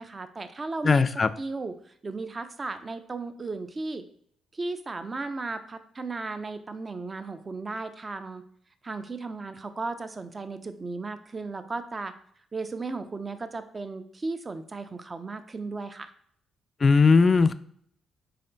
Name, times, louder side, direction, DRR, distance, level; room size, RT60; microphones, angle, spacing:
voice 1, 0.0-1.1 1.4-1.7 2.0-4.0 4.5-8.4 8.8-12.1 12.5-16.1, right 3 dB, 30° right, 10 dB, 0.5 m, -35 dB
voice 2, 0.8-1.3 16.8-17.5, left 4 dB, 40° left, 13 dB, 0.3 m, -18 dB
4.2 x 3.3 x 3.8 m, 0.64 s
cardioid pair, 75°, 0 cm